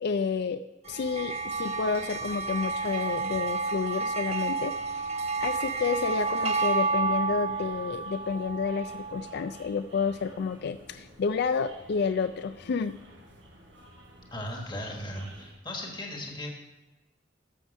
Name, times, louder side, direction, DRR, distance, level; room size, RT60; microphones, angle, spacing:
voice 1, 0.0-0.6 0.9-13.0, left 5 dB, 60° left, 11 dB, 0.4 m, -30 dB
sound 1, 0.8-15.5, right 1 dB, 80° right, 4.6 m, -52 dB
sound 2, 0.9-9.5, right 4 dB, 35° right, 0.8 m, -31 dB
voice 2, 14.3-16.5, left 1 dB, 25° left, 1 dB, 1.5 m, -37 dB
12.5 x 7.1 x 5.4 m, 1.1 s
head